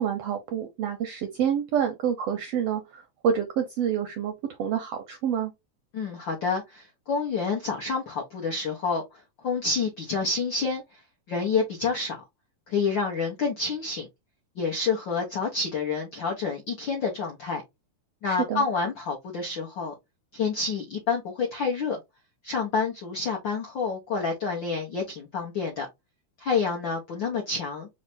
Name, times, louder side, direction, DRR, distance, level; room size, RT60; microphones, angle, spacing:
voice 1, 0.0-4.3 4.6-5.5 18.2-18.6, right 8 dB, 80° right, 1.4 m, -28 dB
voice 2, 5.9-11.0 11.3-12.2 12.7-14.1 14.6-17.6 18.2-19.9 20.3-22.0 22.4-25.9 26.4-27.9, left 4 dB, 85° left, 1.0 m, -28 dB
4.8 x 2.1 x 4.0 m
omnidirectional pair, 3.4 m